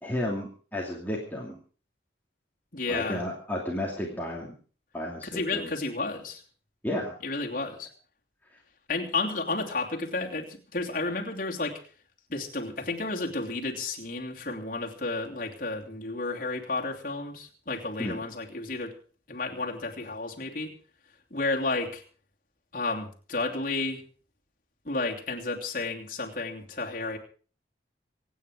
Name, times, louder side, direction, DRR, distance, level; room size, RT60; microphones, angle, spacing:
voice 1, 0.0-1.6 2.9-4.5 4.9-5.7 6.8-7.1 18.0-18.2, left 1 dB, 10° left, -3 dB, 2.6 m, -32 dB
voice 2, 2.7-3.2 5.2-6.4 7.2-7.9 8.9-11.8 12.3-18.9 19.3-20.7 21.3-22.0 22.7-24.0 24.8-27.2, left 3 dB, 50° left, 0 dB, 2.9 m, -32 dB
25.5 x 9.5 x 4.9 m, 0.41 s
head